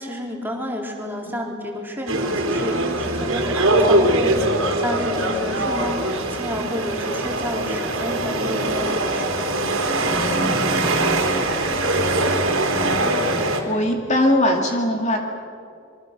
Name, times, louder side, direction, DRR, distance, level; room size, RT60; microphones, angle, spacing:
voice 1, 0.0-9.7, equal, 10° right, 0 dB, 4.0 m, -30 dB
sound 1, 2.1-13.6, right 1 dB, 85° right, 3.6 m, -22 dB
voice 2, 13.7-15.2, left 1 dB, 35° left, 2 dB, 2.6 m, -20 dB
27.5 x 24.0 x 6.9 m, 2.3 s
head